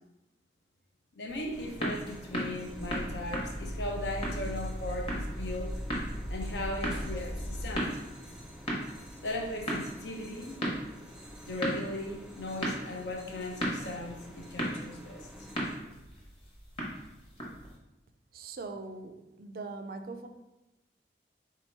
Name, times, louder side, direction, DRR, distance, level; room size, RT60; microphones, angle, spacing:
voice 1, 1.1-5.7 6.3-8.0 9.2-10.7 11.5-15.3, left 1 dB, 85° left, 1 dB, 0.8 m, -38 dB
sound 1, 1.3-17.8, equal, 30° left, 0.9 m, -38 dB
sound 2, 1.5-15.8, equal, 5° right, 0.5 m, -49 dB
sound 3, 2.6-7.8, equal, 50° left, 0.6 m, -38 dB
voice 2, 18.3-20.3, right 3 dB, 55° right, 7 dB, 0.4 m, -41 dB
3.8 x 2.8 x 4.4 m, 0.97 s
head